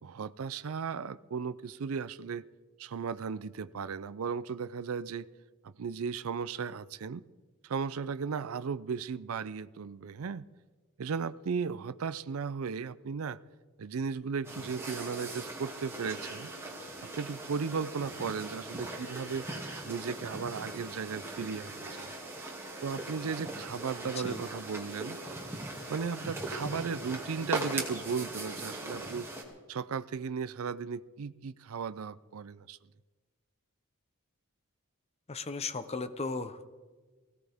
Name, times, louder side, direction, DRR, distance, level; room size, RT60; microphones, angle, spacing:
voice 1, 0.0-2.4 2.8-5.3 5.6-7.2 7.6-10.5 11.0-13.4 13.8-16.5 17.0-19.5 19.8-22.1 22.8-25.2 25.9-29.3 29.7-32.8, right 5 dB, 75° right, 0.5 m, -36 dB
sound 1, 14.4-29.4, right 2 dB, 10° right, 2.4 m, -40 dB
voice 2, 24.0-24.4 35.3-36.7, left 4 dB, 30° left, 0.8 m, -36 dB
20.0 x 17.0 x 3.5 m
head